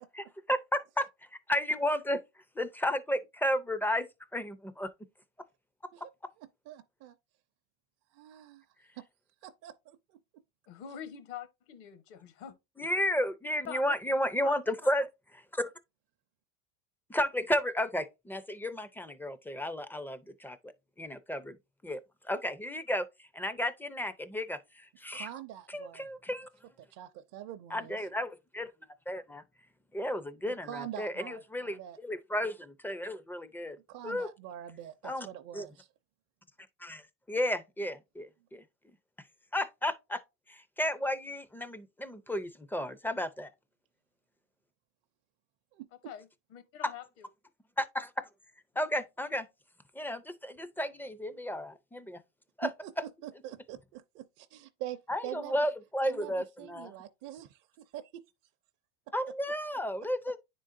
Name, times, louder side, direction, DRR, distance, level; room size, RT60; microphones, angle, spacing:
voice 1, 0.1-1.1 1.5-2.2 2.6-4.9 5.8-5.9 6.2-6.3 12.8-15.1 15.5-15.7 17.1-20.7 21.0-21.6 21.8-25.3 25.7-26.5 27.7-28.7 29.1-29.4 29.9-33.8 34.0-34.3 35.0-35.3 35.5-35.7 36.8-37.0 37.3-38.6 39.5-40.2 40.5-43.5 47.8-48.3 48.8-49.5 49.9-52.2 52.6-52.7 55.1-56.9 59.1-60.4, left 1 dB, 5° left, 0.4 m, -33 dB
voice 2, 6.7-7.2 8.1-8.6 9.0-9.1 9.4-10.2 25.1-26.1 26.9-28.0 30.5-32.0 33.9-35.9 45.7-45.9 52.6-52.9 53.2-55.6 56.0-58.2, right 12 dB, 50° right, 0.6 m, -44 dB
voice 3, 10.7-12.5 13.7-13.8 14.4-14.6 14.8-14.9 46.0-47.3, left 9 dB, 65° left, 1.1 m, -45 dB
9.8 x 3.8 x 2.5 m
supercardioid pair, 95°, 39 cm